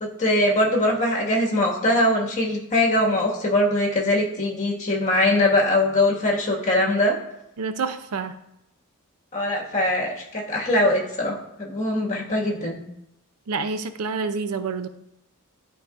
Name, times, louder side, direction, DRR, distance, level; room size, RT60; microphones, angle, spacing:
voice 1, 0.0-7.2 9.3-12.8, left 1 dB, 35° left, -3 dB, 1.6 m, -22 dB
voice 2, 7.6-8.4 13.5-14.9, right 4 dB, 70° right, 11 dB, 0.5 m, -28 dB
11.5 x 4.8 x 2.5 m, 0.83 s
head